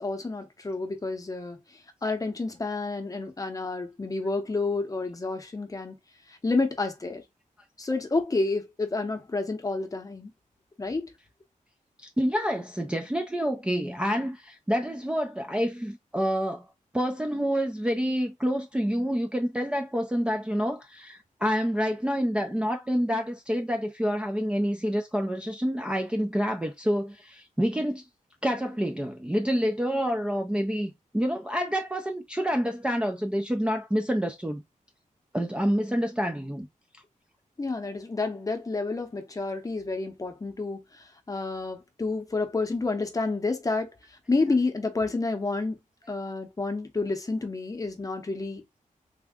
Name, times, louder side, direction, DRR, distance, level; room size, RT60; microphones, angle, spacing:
voice 1, 0.0-1.6 2.0-6.0 6.3-7.2 7.8-10.3 10.8-11.1 37.6-45.8 46.1-48.6, left 3 dB, 25° left, 0.8 m, -29 dB
voice 2, 12.0-16.7 16.9-28.0 28.4-34.6 35.3-36.7, equal, 5° right, 0.4 m, -28 dB
3.5 x 2.2 x 3.6 m
wide cardioid pair, 155°, 14 cm